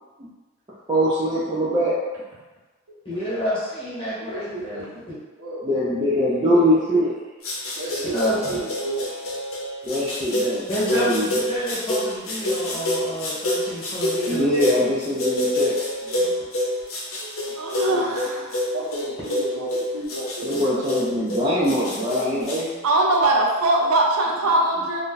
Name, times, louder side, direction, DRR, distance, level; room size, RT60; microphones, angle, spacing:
voice 1, 0.9-2.0 5.6-7.1 9.9-10.6 10.9-11.3 14.3-15.8 20.4-22.7, equal, 20° right, -8 dB, 0.4 m, -22 dB
voice 2, 3.0-5.2 8.0-8.4 10.7-14.6 16.0-16.3, equal, 25° left, -9 dB, 1.1 m, -29 dB
voice 3, 4.2-4.9 5.4-5.6 6.1-6.2 7.7-9.3 16.2-16.3 17.3-18.1 18.7-21.0, right 1 dB, 70° right, -7 dB, 1.0 m, -33 dB
sound 1, 7.4-22.6, left 1 dB, 75° left, 0.7 m, -27 dB
voice 4, 17.2-18.6 22.8-25.0, right 2 dB, 90° right, -2 dB, 0.5 m, -21 dB
2.6 x 2.2 x 3.8 m, 1.2 s
head